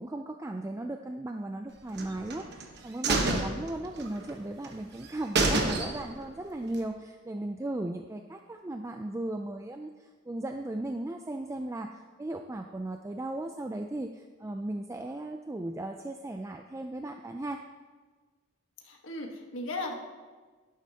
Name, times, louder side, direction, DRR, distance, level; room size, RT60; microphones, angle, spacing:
voice 1, 0.0-17.6, right 1 dB, 15° right, 4 dB, 0.3 m, -36 dB
sound 1, 2.0-2.6 3.0-4.3 4.6-4.7 5.0-5.1 5.4-6.3 6.6-6.7, right 2 dB, 55° right, 1.1 m, -28 dB
voice 2, 18.8-20.0, left 2 dB, 75° left, 1 dB, 1.4 m, -36 dB
11.5 x 11.0 x 2.8 m, 1.4 s
head